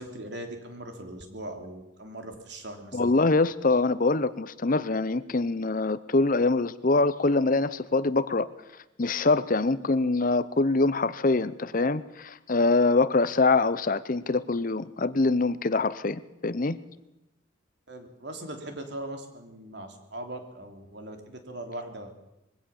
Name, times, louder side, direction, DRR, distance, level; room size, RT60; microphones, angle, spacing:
voice 1, 0.0-3.1 17.9-22.1, right 1 dB, 60° right, 5 dB, 3.2 m, -40 dB
voice 2, 2.9-8.5 9.0-16.8, left 3 dB, 45° left, 16 dB, 0.7 m, -24 dB
22.0 x 16.5 x 7.1 m, 0.91 s
head